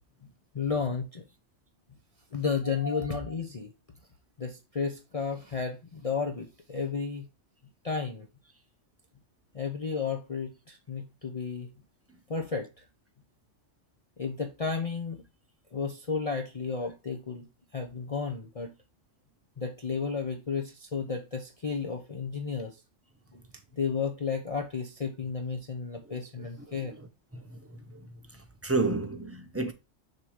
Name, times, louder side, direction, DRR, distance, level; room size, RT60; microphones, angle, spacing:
voice 1, 0.5-1.2 2.3-3.7 4.4-7.3 7.8-8.3 9.5-11.7 12.3-12.8 14.2-15.2 15.7-18.7 19.6-22.8 23.3-23.4 23.7-26.9, left 5 dB, 35° left, 0.7 m, -33 dB
voice 2, 27.3-28.0 28.6-29.7, right 3 dB, 15° right, 0.6 m, -31 dB
6.6 x 3.0 x 4.7 m
omnidirectional pair, 1.3 m